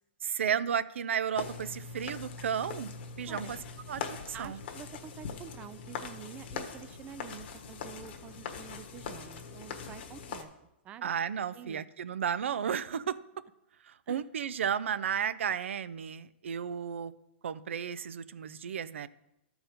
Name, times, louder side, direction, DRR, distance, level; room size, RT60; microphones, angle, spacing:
voice 1, 0.2-3.6 3.9-4.6 11.0-13.2 13.9-17.1 17.4-19.1, right 8 dB, 90° right, 16 dB, 0.5 m, -33 dB
sound 1, 1.4-10.4, left 6 dB, 60° left, 1.3 m, -42 dB
voice 2, 4.3-11.1 11.5-11.8 14.1-14.2, right 9 dB, 20° right, 15 dB, 0.3 m, -48 dB
13.0 x 4.7 x 5.1 m, 0.88 s
hypercardioid pair, 155°, 6 cm